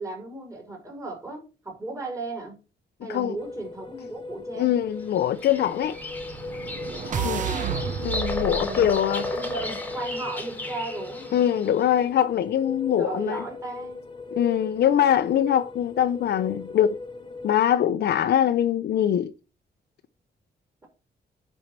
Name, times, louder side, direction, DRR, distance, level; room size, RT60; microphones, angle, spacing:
voice 1, 0.0-2.6 3.0-4.7 7.1-7.8 8.5-8.9 9.2-11.4 13.0-14.1, right 3 dB, 20° right, 5.4 m, -35 dB
sound 1, 3.4-17.5, left 3 dB, 30° left, 0.9 m, -38 dB
voice 2, 4.6-6.0 7.2-7.4 8.0-9.2 11.3-13.4 14.3-17.0 17.4-19.3, left 10 dB, 75° left, 0.7 m, -23 dB
Bird vocalization bird call bird song, 5.2-11.8, left 2 dB, 10° left, 1.9 m, -35 dB
sound 2, 6.0-10.2, right 7 dB, 50° right, 0.9 m, -33 dB
10.5 x 5.6 x 4.7 m
wide cardioid pair, 175°, 17 cm